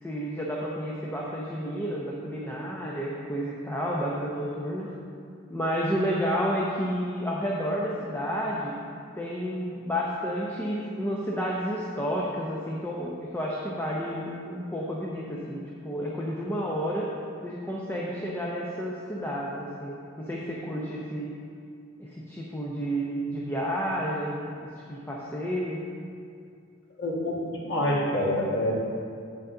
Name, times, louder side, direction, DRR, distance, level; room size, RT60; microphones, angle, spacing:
voice 1, 0.0-4.9 5.5-8.7 9.2-17.0 17.4-21.3 22.0-24.5 24.8-25.8, equal, 10° left, -4 dB, 0.7 m, -31 dB
voice 2, 27.0-27.4 27.6-28.7, left 1 dB, 60° left, -4 dB, 1.7 m, -26 dB
8.6 x 6.9 x 3.8 m, 2.4 s
head